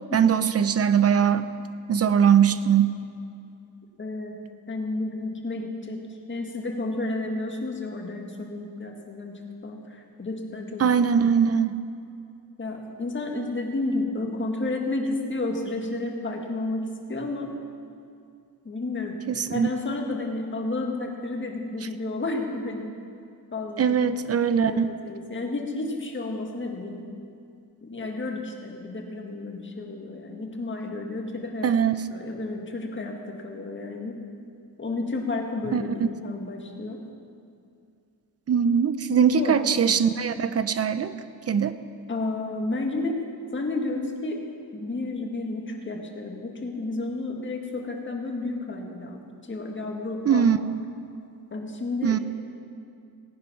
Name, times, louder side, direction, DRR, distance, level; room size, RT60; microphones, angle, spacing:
voice 1, 0.1-1.5 1.9-3.0 10.8-11.7 19.4-19.7 23.8-24.9 31.6-32.0 35.7-36.1 38.5-41.1 41.5-41.7 50.3-50.6 52.0-52.2, right 7 dB, 40° right, 12 dB, 0.6 m, -21 dB
voice 2, 4.0-10.9 12.6-17.5 18.6-19.2 19.5-23.0 23.5-24.0 24.6-27.1 27.8-31.7 32.1-34.2 34.8-37.0 39.1-39.6 42.1-43.2 43.5-44.4 44.7-50.5 51.5-52.2, left 2 dB, 30° left, 2 dB, 1.8 m, -31 dB
17.5 x 9.6 x 5.9 m, 2.4 s
cardioid pair, 115°, 37 cm